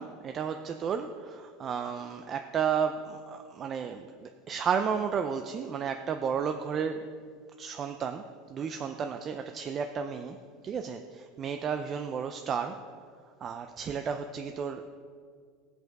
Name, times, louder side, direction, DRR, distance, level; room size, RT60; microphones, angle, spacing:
voice 1, 0.0-7.3 7.6-10.4 10.6-12.9 13.4-14.8, right 7 dB, 25° right, 7 dB, 0.4 m, -33 dB
17.5 x 8.0 x 4.6 m, 2.1 s
supercardioid pair, 170°, 0 cm